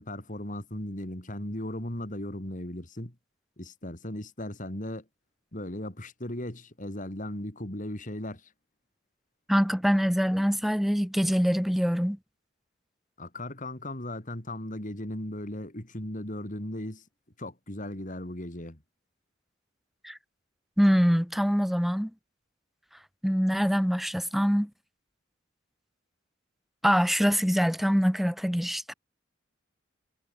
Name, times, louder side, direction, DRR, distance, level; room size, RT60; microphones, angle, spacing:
voice 1, 0.0-3.1 3.6-5.0 5.5-8.5 13.2-17.0 17.4-18.8, left 1 dB, 40° left, 3.4 m, -37 dB
voice 2, 9.5-12.2 20.0-20.2 20.8-22.1 23.2-24.7 26.8-28.9, equal, ahead, 0.7 m, -24 dB
head